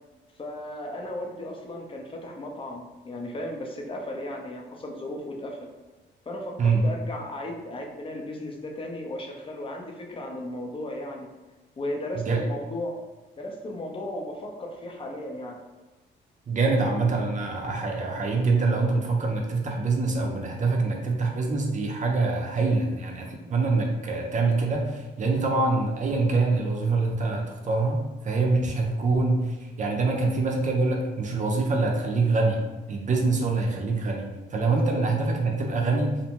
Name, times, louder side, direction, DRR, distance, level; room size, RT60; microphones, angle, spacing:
voice 1, 0.4-5.7 6.3-11.3 11.8-13.0 13.4-15.6 34.7-34.8, left 1 dB, 25° left, 1 dB, 0.5 m, -35 dB
voice 2, 16.5-36.2, right 3 dB, 40° right, 1 dB, 0.5 m, -25 dB
2.5 x 2.1 x 2.9 m, 1.2 s
cardioid pair, 90°, 20 cm